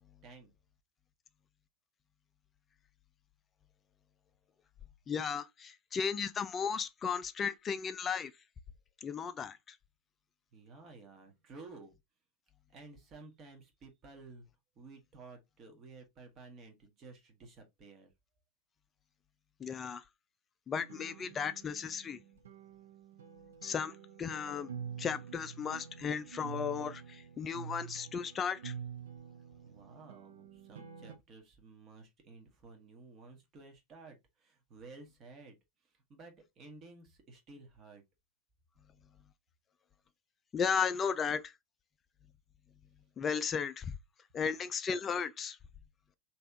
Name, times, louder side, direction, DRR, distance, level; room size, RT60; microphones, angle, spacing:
voice 1, 0.2-0.5 10.5-12.0 12.7-14.5 14.7-18.1 29.6-35.6 35.8-38.0, right 3 dB, 30° right, 1.3 m, -54 dB
voice 2, 5.1-8.3 9.0-9.6 19.6-20.0 20.7-22.2 23.6-23.9 24.2-24.7 25.0-28.7 40.5-41.4 43.2-43.9 44.3-45.6, left 6 dB, 20° left, 0.4 m, -35 dB
sound 1, 20.7-31.2, right 7 dB, 65° right, 0.6 m, -47 dB
3.4 x 2.9 x 3.4 m
figure-of-eight pair, 90°, 0 cm